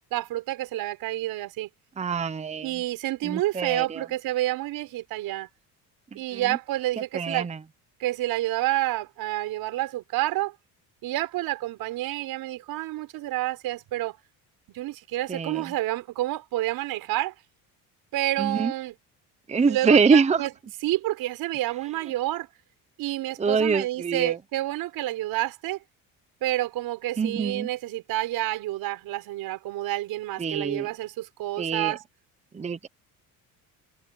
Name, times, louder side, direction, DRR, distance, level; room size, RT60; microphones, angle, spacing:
voice 1, 0.1-1.7 2.6-5.5 6.2-7.5 8.0-10.5 11.0-14.2 14.7-17.3 18.1-18.9 19.7-20.5 20.8-22.5 23.0-25.8 26.4-32.0, right 15 dB, 75° right, 5.2 m, -29 dB
voice 2, 2.0-2.7 3.2-4.1 6.1-6.6 7.1-7.6 15.3-15.7 18.4-18.7 19.5-20.5 23.4-24.4 27.2-27.7 30.4-30.9 31.6-32.0 32.5-32.9, right 5 dB, 20° right, 0.9 m, -25 dB
cardioid pair, 125°, 36 cm